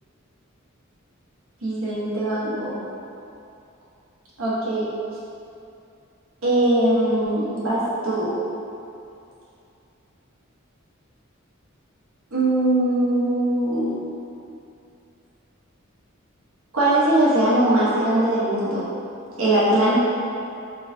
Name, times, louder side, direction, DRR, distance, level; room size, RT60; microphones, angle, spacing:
voice 1, 1.6-2.7 4.4-4.8 6.4-8.3 12.3-13.9 16.7-18.9 19.4-20.0, right 1 dB, 85° right, -9 dB, 1.0 m, -21 dB
4.1 x 3.9 x 2.6 m, 2.6 s
head